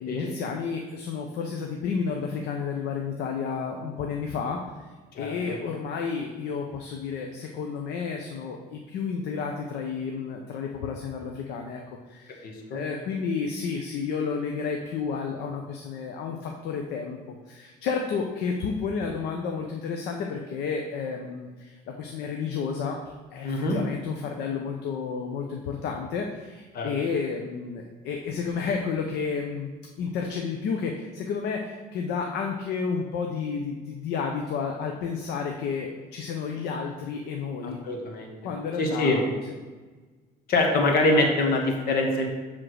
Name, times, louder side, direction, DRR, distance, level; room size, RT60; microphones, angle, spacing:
voice 1, 0.0-4.9 5.2-12.4 12.7-23.0 23.3-29.7 30.0-37.8 38.4-39.3, left 5 dB, 80° left, 2 dB, 0.8 m, -31 dB
voice 2, 5.1-5.5 12.4-12.8 23.4-23.8 26.7-26.9 37.6-38.3 38.8-39.2 40.5-42.3, left 2 dB, 65° left, 2 dB, 1.6 m, -24 dB
7.7 x 3.7 x 6.3 m, 1.3 s
cardioid pair, 110°, 17 cm